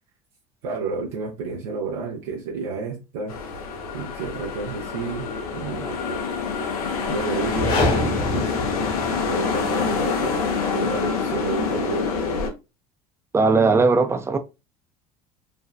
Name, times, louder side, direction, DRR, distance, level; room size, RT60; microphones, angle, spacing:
voice 1, 0.6-3.4 3.9-5.3 5.5-5.9 7.1-8.6 9.3-10.4 10.7-12.1, right 4 dB, 85° right, 0.6 m, -30 dB
sound 1, 3.3-12.5, left 5 dB, 90° left, 0.5 m, -26 dB
sound 2, 7.4-9.5, left 2 dB, 50° left, 1.0 m, -26 dB
voice 2, 13.3-14.4, right 4 dB, 15° right, 0.4 m, -18 dB
2.6 x 2.1 x 2.3 m
hypercardioid pair, 85°, 18 cm